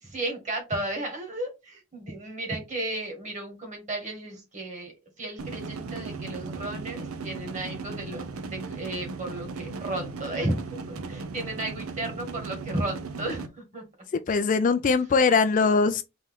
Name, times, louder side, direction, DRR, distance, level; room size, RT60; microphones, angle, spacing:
voice 1, 0.0-4.9 5.2-13.8, right 1 dB, 35° right, 1.9 m, -34 dB
sound 1, 5.4-13.5, right 4 dB, 90° right, 0.7 m, -37 dB
voice 2, 14.1-16.0, left 4 dB, 40° left, 0.3 m, -21 dB
4.2 x 3.1 x 3.7 m
head